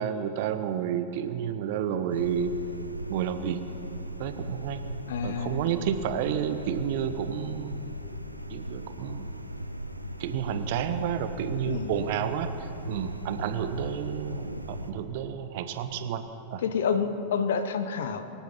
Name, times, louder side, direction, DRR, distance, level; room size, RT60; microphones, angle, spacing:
voice 1, 0.0-2.6 3.1-3.6 4.2-4.8 5.2-7.8 8.5-9.3 10.2-16.2 16.5-16.6, right 9 dB, 50° right, 10 dB, 1.0 m, -30 dB
sound 1, 2.1-14.9, equal, 90° right, 0.8 m, -38 dB
voice 2, 5.1-5.6 11.7-11.9 16.6-18.2, left 6 dB, 60° left, 11 dB, 1.0 m, -28 dB
24.5 x 8.9 x 5.8 m, 2.8 s
figure-of-eight pair, 90°, 0 cm